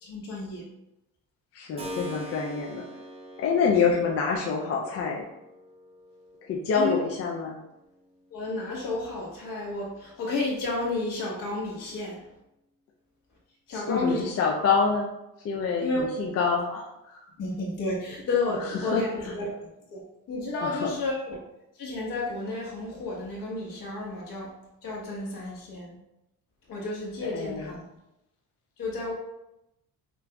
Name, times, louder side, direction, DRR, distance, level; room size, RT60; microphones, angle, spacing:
voice 1, 0.0-0.6 6.7-7.0 8.3-12.2 13.7-14.3 15.8-16.0 16.7-16.8 17.4-19.5 19.9-20.0 20.3-21.4 21.8-24.5 24.8-26.0 26.7-27.8 28.8-29.1, left 2 dB, 65° left, -3 dB, 1.3 m, -31 dB
voice 2, 1.5-2.8 3.4-5.3 6.5-7.6 13.7-15.1 15.4-16.9 18.9-19.0 20.6-20.9 27.2-27.7, left 5 dB, 40° left, 0 dB, 0.4 m, -26 dB
Keyboard (musical), 1.8-10.4, equal, 20° right, 0.6 m, -45 dB
5.9 x 2.6 x 2.2 m, 0.89 s
cardioid pair, 135°, 35 cm